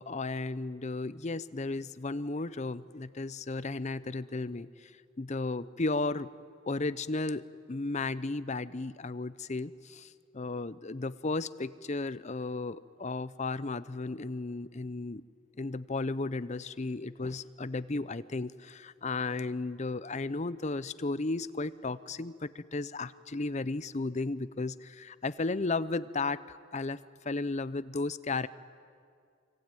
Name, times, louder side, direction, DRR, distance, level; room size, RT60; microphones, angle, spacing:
voice 1, 0.0-4.9 5.2-6.3 6.7-15.2 15.6-27.0 27.2-28.5, left 3 dB, 35° left, 15 dB, 0.6 m, -34 dB
25.5 x 25.0 x 9.2 m, 2.2 s
head